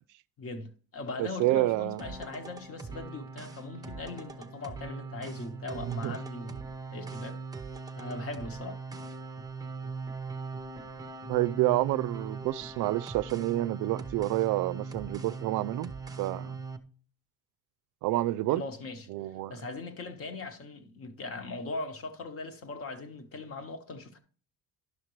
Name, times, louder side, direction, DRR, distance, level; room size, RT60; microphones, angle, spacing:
voice 1, 0.4-6.6 6.9-7.4 8.0-8.8 18.5-19.1 19.5-24.2, left 3 dB, 40° left, 1.3 m, -40 dB
voice 2, 1.2-2.0 5.8-6.2 11.3-15.9 16.2-16.6 18.0-18.6 19.1-19.5, right 17 dB, 65° right, 0.4 m, -28 dB
sound 1, 2.0-16.8, right 4 dB, 10° right, 0.7 m, -40 dB
11.0 x 5.8 x 3.1 m
cardioid pair, 130°, 34 cm